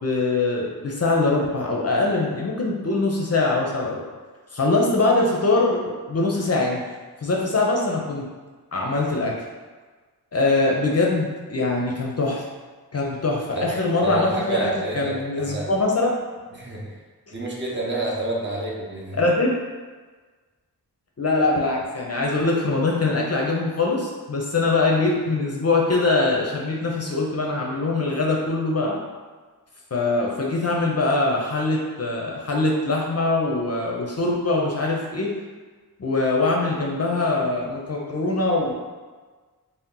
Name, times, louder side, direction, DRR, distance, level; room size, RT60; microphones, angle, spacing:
voice 1, 0.0-4.0 4.5-6.8 7.2-8.3 8.7-9.3 10.3-12.4 12.9-16.1 19.2-19.5 21.2-29.0 29.9-35.3 36.0-38.7, left 2 dB, 40° left, -2 dB, 0.5 m, -22 dB
voice 2, 14.0-15.7 16.5-17.0 17.3-19.2, right 2 dB, 30° right, -4 dB, 0.7 m, -29 dB
2.8 x 2.1 x 3.6 m, 1.4 s
cardioid pair, 55°, 39 cm